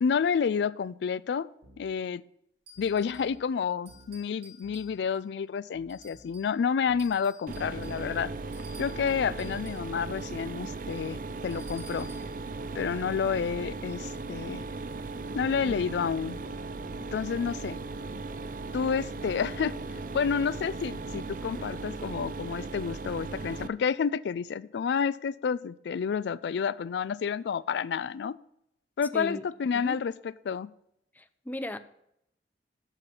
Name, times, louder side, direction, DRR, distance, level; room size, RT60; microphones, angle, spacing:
voice 1, 0.0-1.5 1.8-2.2 2.8-8.3 8.8-11.2 11.4-12.1 12.7-14.6 15.3-16.4 17.1-17.8 18.7-19.7 20.1-28.4 29.0-30.1 30.4-30.7, left 6 dB, 70° left, 19 dB, 0.3 m, -29 dB
sound 1, 1.6-1.9 2.7-3.5 3.9-4.2 4.6-5.0 5.7-6.5 6.9-7.2 7.6-8.0 8.7-9.4 9.9-10.2 10.6-10.9 11.7-12.4 12.9-13.2, right 1 dB, 85° right, 2.0 m, -55 dB
sound 2, 2.7-3.4 3.8-5.3 5.9-6.6 7.0-9.9 11.5-12.4, equal, 65° right, 3.6 m, -54 dB
Mechanisms, 7.5-23.7, right 3 dB, 50° right, 0.5 m, -37 dB
voice 2, 29.1-29.5 29.7-30.0 31.1-31.8, left 1 dB, 10° left, 11 dB, 0.5 m, -37 dB
8.2 x 5.9 x 5.5 m, 0.78 s
head